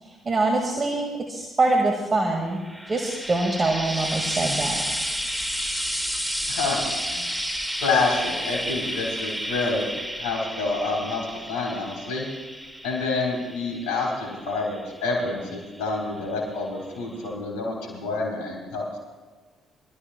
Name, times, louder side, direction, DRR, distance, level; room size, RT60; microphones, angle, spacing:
voice 1, 0.0-2.6 2.9-4.8, right 2 dB, 35° right, 1 dB, 1.8 m, -24 dB
Frying (food), 2.5-15.9 16.9-17.0, equal, 5° right, 2.0 m, -31 dB
voice 2, 6.5-7.3 7.8-9.9 10.2-11.2 11.5-12.3 12.8-19.0, left 3 dB, 75° left, -2 dB, 3.6 m, -28 dB
24.5 x 13.5 x 2.2 m, 1.4 s
hypercardioid pair, 50°, 0 cm